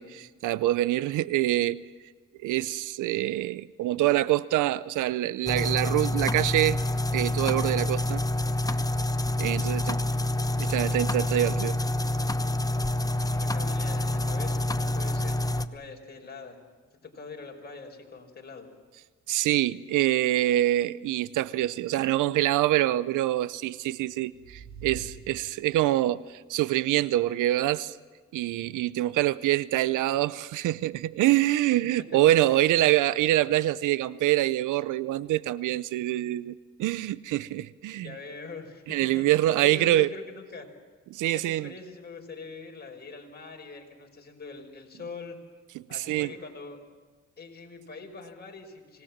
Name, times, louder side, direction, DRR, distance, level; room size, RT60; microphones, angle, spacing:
voice 1, 0.0-1.8 2.4-6.8 7.1-8.2 9.4-10.0 10.6-11.8 19.3-28.0 28.3-38.1 38.9-40.1 41.1-41.7 45.7-46.3, right 15 dB, 80° right, 0.6 m, -25 dB
sound 1, 5.5-15.7, left 1 dB, 10° left, 0.9 m, -27 dB
voice 2, 13.3-16.6 17.0-18.7 32.1-32.8 37.9-39.2 39.6-40.7 41.3-45.4 45.9-46.8 47.4-49.0, left 4 dB, 35° left, 5.2 m, -43 dB
sound 2, 23.8-26.1, right 5 dB, 65° right, 3.0 m, -46 dB
26.0 x 19.0 x 7.3 m
cardioid pair, 90°, 30 cm